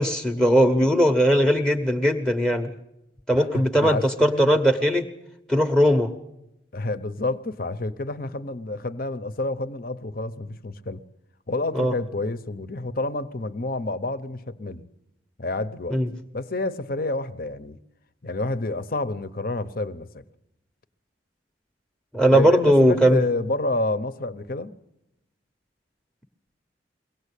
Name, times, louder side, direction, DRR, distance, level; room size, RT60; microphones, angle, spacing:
voice 1, 0.0-2.7 3.3-5.1 5.5-6.1 11.7-11.9 15.9-16.1 22.1-23.2, equal, 5° left, 0.9 m, -19 dB
voice 2, 3.3-4.5 6.7-11.0 11.5-14.8 15.4-16.0 16.3-17.8 18.2-20.2 22.3-24.7, left 2 dB, 50° left, 0.9 m, -29 dB
23.0 x 17.5 x 8.4 m
head